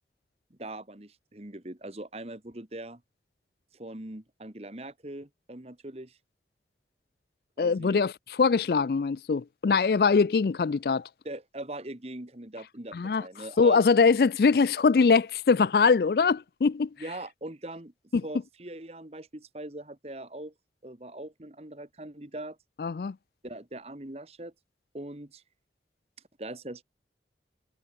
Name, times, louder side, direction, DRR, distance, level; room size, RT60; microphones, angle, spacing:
voice 1, 0.5-3.0 3.7-6.2 7.6-8.0 11.2-13.8 17.0-17.9 18.2-20.5 20.8-22.6 23.4-24.5 24.9-25.4 26.4-26.8, right 1 dB, 35° right, 1.5 m, -41 dB
voice 2, 7.6-8.1 8.4-11.1 12.9-13.3 13.6-16.9 18.1-18.2 22.8-23.2, left 5 dB, 60° left, 0.4 m, -22 dB
head